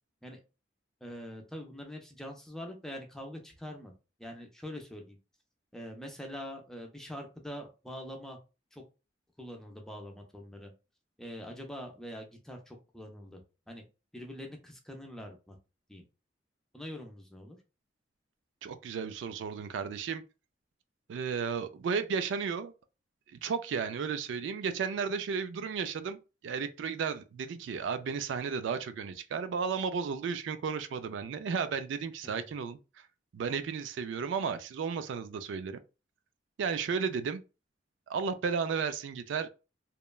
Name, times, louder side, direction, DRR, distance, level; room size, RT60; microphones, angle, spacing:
voice 1, 1.0-3.9 4.2-5.2 5.7-8.4 8.7-8.8 9.4-10.7 11.2-13.4 13.7-13.8 14.1-15.6 15.9-16.0 16.7-17.6 32.2-32.4, equal, 5° left, 0.4 m, -44 dB
voice 2, 18.6-20.2 21.1-22.7 23.3-26.2 26.4-33.1 33.3-35.8 36.6-37.4 38.1-39.5, right 6 dB, 80° right, 0.3 m, -33 dB
2.9 x 2.2 x 2.2 m
head